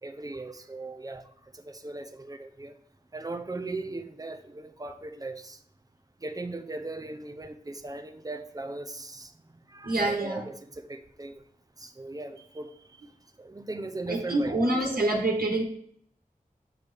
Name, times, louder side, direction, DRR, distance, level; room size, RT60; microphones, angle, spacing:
voice 1, 0.0-2.7 3.1-5.6 6.2-9.3 9.7-11.4 11.8-13.0 13.4-14.6 14.9-15.0, right 2 dB, 25° right, 0.8 m, -38 dB
voice 2, 9.8-10.4 14.1-15.6, right 2 dB, 85° right, 1.6 m, -26 dB
8.4 x 6.6 x 3.5 m
wide cardioid pair, 70°, 15 cm